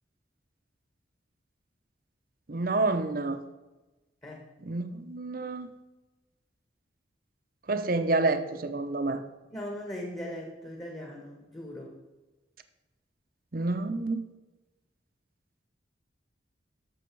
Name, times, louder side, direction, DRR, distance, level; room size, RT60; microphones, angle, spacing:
voice 1, 2.5-3.4 4.6-5.7 7.7-9.2 13.5-14.2, right 3 dB, 50° right, 9 dB, 0.8 m, -28 dB
voice 2, 9.5-12.0, left 1 dB, 20° left, -1 dB, 1.6 m, -39 dB
13.0 x 6.3 x 4.7 m, 1.1 s
head